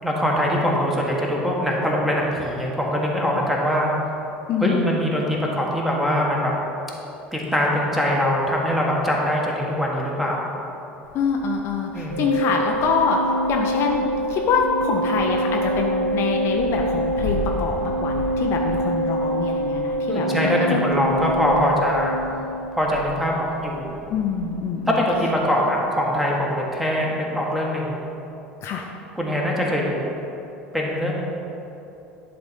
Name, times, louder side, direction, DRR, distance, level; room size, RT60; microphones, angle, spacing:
voice 1, 0.0-3.9 4.6-6.5 7.3-10.4 11.9-12.2 20.1-22.2 22.7-24.0 24.9-28.0 29.1-30.2 30.7-31.1, equal, 5° right, -3 dB, 1.6 m, -22 dB
voice 2, 4.5-4.9 11.1-20.5 21.2-21.4 24.1-24.9 28.6-28.8, left 5 dB, 45° left, 1 dB, 0.7 m, -25 dB
Wind, 11.0-25.9, left 2 dB, 70° left, 1.1 m, -38 dB
Organ, 12.1-22.8, right 1 dB, 80° right, 0.4 m, -25 dB
10.5 x 4.0 x 5.4 m, 2.9 s
figure-of-eight pair, 70°, 6 cm